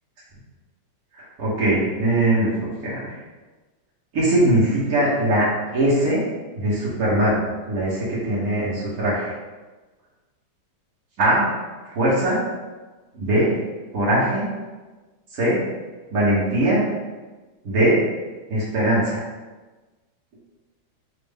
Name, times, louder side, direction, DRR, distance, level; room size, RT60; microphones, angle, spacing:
voice 1, 1.1-3.1 4.1-5.5 5.7-6.2 6.5-7.4 7.7-9.3 11.2-11.5 11.9-12.4 13.1-13.5 13.9-14.5 15.3-15.6 16.1-16.8 17.6-18.0 18.5-19.2, right 1 dB, 55° right, -7 dB, 1.3 m, -21 dB
4.2 x 2.5 x 3.4 m, 1.2 s
omnidirectional pair, 2.2 m